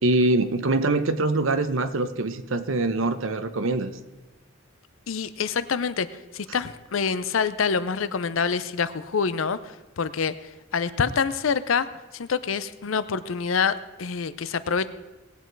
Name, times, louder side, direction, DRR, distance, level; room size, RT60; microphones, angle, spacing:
voice 1, 0.0-3.9, right 2 dB, 70° right, 10 dB, 0.9 m, -24 dB
voice 2, 5.1-6.1 6.3-10.3 10.7-11.9 12.1-14.9, left 5 dB, 75° left, 15 dB, 0.6 m, -26 dB
18.5 x 8.0 x 4.6 m, 1.1 s
head